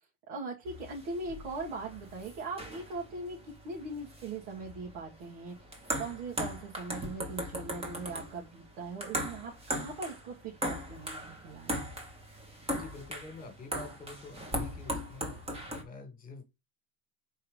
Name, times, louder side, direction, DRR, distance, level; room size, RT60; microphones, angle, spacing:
voice 1, 0.3-3.4 3.6-5.5 6.0-11.8, right 3 dB, 80° right, 2.5 m, -40 dB
sound 1, 0.7-15.8, equal, 15° right, 1.2 m, -39 dB
voice 2, 12.8-16.4, left 3 dB, 20° left, 1.9 m, -47 dB
4.9 x 4.6 x 5.0 m
cardioid pair, 170°, 45 cm